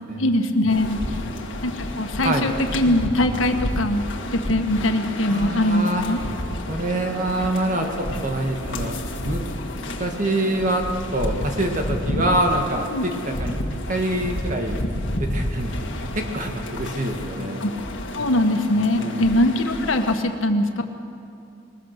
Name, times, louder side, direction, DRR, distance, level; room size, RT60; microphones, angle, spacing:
voice 1, 0.2-1.0 1.6-4.0 4.3-6.2 12.9-13.0 17.6-17.7 18.1-20.8, left 1 dB, 90° left, 5 dB, 1.5 m, -21 dB
sound 1, 0.7-20.2, left 1 dB, 70° left, 1.9 m, -30 dB
voice 2, 5.3-6.0 6.7-7.9 8.2-9.0 9.2-9.4 10.0-10.8 11.1-13.6 13.9-14.8 15.2-17.6 18.2-18.3 19.0-19.2, right 1 dB, 40° right, 3 dB, 1.7 m, -25 dB
21.5 x 21.5 x 6.7 m, 2.5 s
head